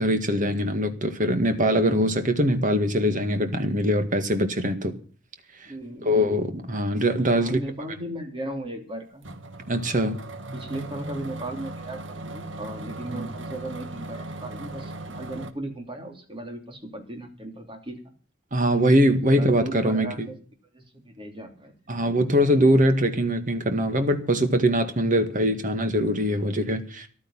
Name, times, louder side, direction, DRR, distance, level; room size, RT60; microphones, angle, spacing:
voice 1, 0.0-4.9 6.0-7.6 9.7-10.2 13.1-13.3 18.5-20.3 21.9-27.1, equal, 45° right, 2.0 m, -22 dB
voice 2, 5.7-6.3 7.3-9.3 10.5-18.0 19.3-20.4 20.7-21.7, right 1 dB, 30° right, 3.2 m, -36 dB
sound 1, 9.2-15.5, right 2 dB, 90° right, 1.4 m, -38 dB
14.5 x 12.0 x 5.7 m
head